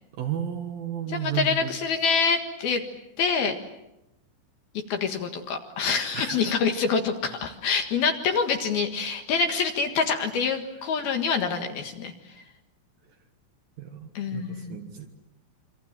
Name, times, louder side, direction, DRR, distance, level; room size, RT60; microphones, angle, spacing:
voice 1, 0.2-1.7 6.1-6.5 13.8-15.2, right 8 dB, 60° right, 5 dB, 2.7 m, -33 dB
voice 2, 1.1-2.8 3.2-3.6 4.9-12.4 14.1-14.8, left 5 dB, 60° left, 5 dB, 3.1 m, -26 dB
28.0 x 25.5 x 7.6 m, 0.89 s
omnidirectional pair, 5.7 m